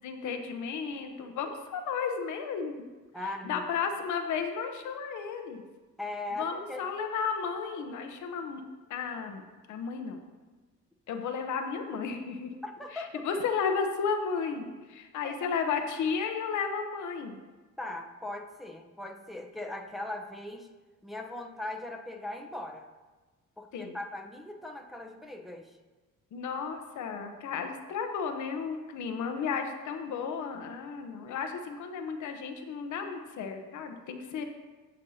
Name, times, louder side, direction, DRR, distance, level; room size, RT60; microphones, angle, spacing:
voice 1, 0.0-2.7 3.4-5.6 6.3-8.6 8.9-10.2 11.1-12.5 12.9-17.4 23.7-24.0 26.3-34.4, left 6 dB, 75° left, 5 dB, 0.9 m, -33 dB
voice 2, 3.1-3.6 6.0-6.9 12.6-13.2 15.2-15.5 17.8-20.7 21.0-22.9 23.6-25.8, left 2 dB, ahead, 2 dB, 0.8 m, -39 dB
15.0 x 5.3 x 2.8 m, 1.3 s
cardioid pair, 90°, 30 cm